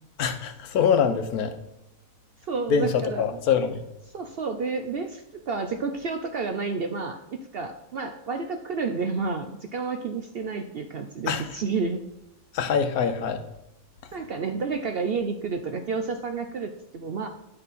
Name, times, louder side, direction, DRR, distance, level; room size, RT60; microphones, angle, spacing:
voice 1, 0.2-1.6 2.7-3.8 11.3-11.5 12.5-13.4, left 6 dB, 85° left, 1.3 m, -24 dB
voice 2, 2.4-3.4 4.1-12.0 14.1-17.3, right 4 dB, 65° right, 0.6 m, -30 dB
10.0 x 5.5 x 4.1 m
omnidirectional pair, 1.5 m